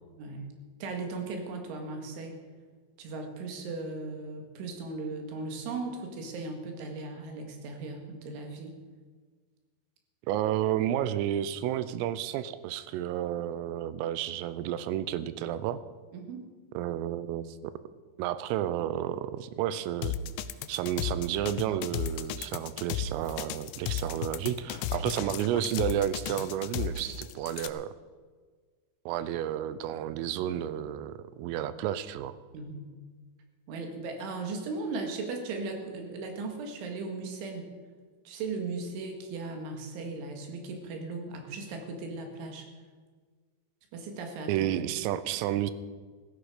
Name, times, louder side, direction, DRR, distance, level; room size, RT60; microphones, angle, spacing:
voice 1, 0.2-0.5 0.8-2.4 3.0-8.8 16.1-16.5 32.5-32.9 33.7-37.7 38.3-42.7 43.9-44.7, right 3 dB, 75° right, 3 dB, 4.2 m, -37 dB
voice 2, 10.3-15.8 16.7-17.7 18.2-20.2 20.7-27.9 29.1-32.4 44.5-45.7, right 11 dB, 90° right, 14 dB, 3.3 m, -31 dB
sound 1, 20.0-27.7, left 10 dB, 85° left, 3.2 m, -34 dB
16.0 x 13.5 x 5.0 m, 1.5 s
omnidirectional pair, 5.7 m